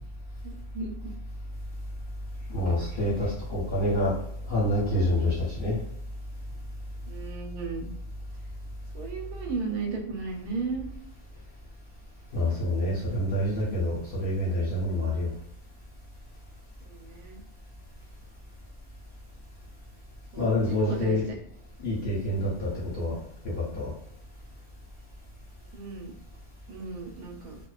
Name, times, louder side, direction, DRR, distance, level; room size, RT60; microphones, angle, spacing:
voice 1, 0.4-1.1 7.1-7.9 8.9-10.9 16.8-17.4 20.3-21.4 25.7-26.1 26.7-27.6, right 4 dB, 85° right, 1 dB, 1.1 m, -35 dB
voice 2, 2.5-4.2 4.5-5.8 12.3-15.3 20.4-21.2 21.8-23.2 23.4-23.9, left 1 dB, 50° left, -6 dB, 0.7 m, -27 dB
2.5 x 2.1 x 2.3 m, 0.72 s
omnidirectional pair, 1.5 m